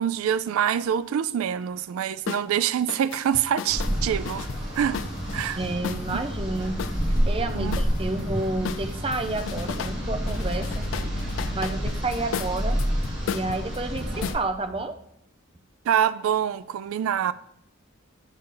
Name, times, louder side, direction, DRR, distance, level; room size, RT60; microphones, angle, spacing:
voice 1, 0.0-4.5 4.7-5.0 5.3-5.6 6.1-6.2 7.5-7.8 15.9-17.3, right 9 dB, 85° right, 0.3 m, -25 dB
sound 1, 2.3-2.5 2.9-6.2 6.8-8.3 8.6-10.0 10.3-14.4, left 7 dB, 65° left, 0.3 m, -35 dB
sound 2, 3.7-14.3, equal, ahead, 2.3 m, -29 dB
voice 2, 5.6-6.8 7.3-11.2 11.5-12.8 13.3-15.0, right 2 dB, 25° right, 0.5 m, -30 dB
8.2 x 6.6 x 3.8 m
head